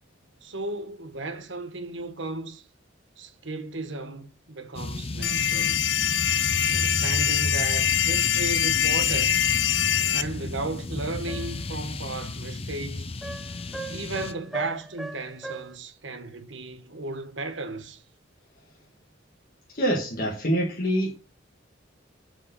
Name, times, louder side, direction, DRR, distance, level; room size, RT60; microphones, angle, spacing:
voice 1, 0.4-2.6 3.2-5.8 6.7-9.4 10.1-13.1 13.9-18.0, right 2 dB, 70° right, 1.4 m, -35 dB
sound 1, 4.7-14.3, left 2 dB, 30° left, 0.6 m, -33 dB
sound 2, 5.2-10.2, left 10 dB, 70° left, 0.8 m, -24 dB
sound 3, 11.3-11.7 13.2-15.8, right 3 dB, ahead, 1.1 m, -38 dB
voice 2, 19.7-21.1, equal, 45° left, 1.7 m, -25 dB
7.6 x 4.7 x 6.9 m
head